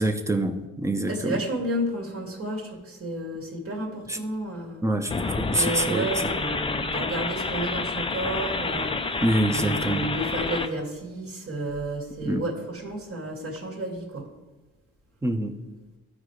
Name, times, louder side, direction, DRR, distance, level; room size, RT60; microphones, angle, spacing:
voice 1, 0.0-1.3 4.1-4.2 4.8-5.1 5.4-6.3 9.2-10.1 12.2-12.4 15.2-15.6, right 1 dB, 10° right, 6 dB, 1.0 m, -25 dB
voice 2, 1.1-4.8 5.5-14.3, right 1 dB, 50° right, -1 dB, 2.3 m, -31 dB
sound 1, 5.1-10.7, left 3 dB, 20° left, 0.6 m, -29 dB
14.5 x 4.9 x 3.3 m, 1.2 s
cardioid pair, 90°, 30 cm